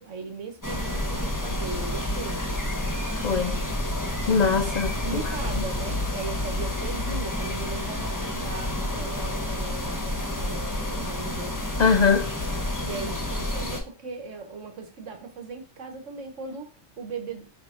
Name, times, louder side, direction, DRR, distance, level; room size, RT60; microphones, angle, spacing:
voice 1, 0.0-2.4 5.0-11.6 12.8-16.7 17.0-17.4, right 4 dB, 75° right, 1.6 m, -38 dB
sound 1, 0.6-13.8, left 1 dB, 15° left, 1.3 m, -29 dB
voice 2, 3.1-3.6 4.2-5.3 11.8-12.3, left 5 dB, 80° left, 0.3 m, -22 dB
9.3 x 3.1 x 5.1 m
omnidirectional pair, 1.3 m